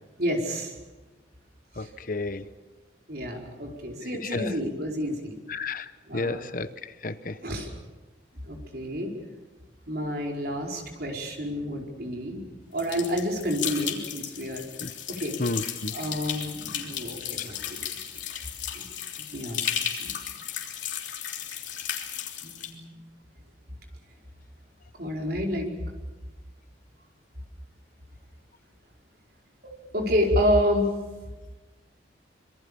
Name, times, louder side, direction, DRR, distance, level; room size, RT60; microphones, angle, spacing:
voice 1, 0.2-0.7 1.8-1.9 3.1-5.4 6.1-6.4 7.4-7.7 8.4-9.1 9.9-12.4 12.7-14.6 15.1-15.4 15.9-18.0 18.7-18.9 19.3-19.7 20.0-20.1 22.4-23.0 25.0-25.7 29.9-30.9, equal, 55° right, 1 dB, 4.9 m, -29 dB
voice 2, 1.8-2.4 4.2-4.5 5.5-7.4 14.8-14.9 15.4-15.9, left 3 dB, 45° left, 13 dB, 0.9 m, -32 dB
sound 1, 12.8-22.7, left 9 dB, 75° left, 3.3 m, -34 dB
26.0 x 23.0 x 7.0 m, 1.2 s
head